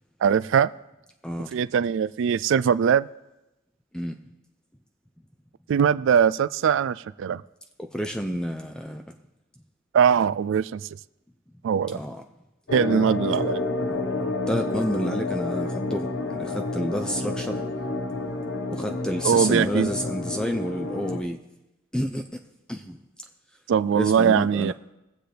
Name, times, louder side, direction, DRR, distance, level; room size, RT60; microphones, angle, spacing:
voice 1, 0.2-0.7 1.5-3.1 5.7-7.4 9.9-10.8 11.6-12.0 12.7-13.6 19.2-19.9 23.7-24.7, right 7 dB, 65° right, 16 dB, 0.3 m, -21 dB
voice 2, 1.2-1.5 3.9-4.2 7.8-9.0 11.9-12.2 14.5-17.6 18.7-21.4 21.9-22.4 22.7-23.0 23.9-24.7, equal, 5° left, 5 dB, 0.5 m, -29 dB
sound 1, 12.7-21.2, left 2 dB, 60° left, 1.0 m, -29 dB
21.5 x 7.7 x 3.4 m, 0.96 s
head